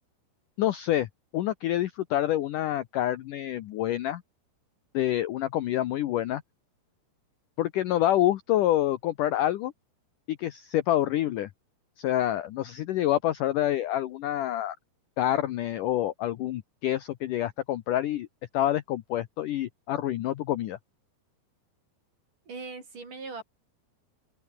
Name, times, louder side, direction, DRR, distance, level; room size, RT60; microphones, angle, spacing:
voice 1, 0.6-1.1 1.3-4.2 4.9-6.4 7.6-9.7 10.3-11.5 12.0-14.8 15.2-18.3 18.5-20.8, left 13 dB, 70° left, 2.0 m, -27 dB
voice 2, 22.5-23.4, right 4 dB, 50° right, 7.9 m, -39 dB
open air
omnidirectional pair, 4.8 m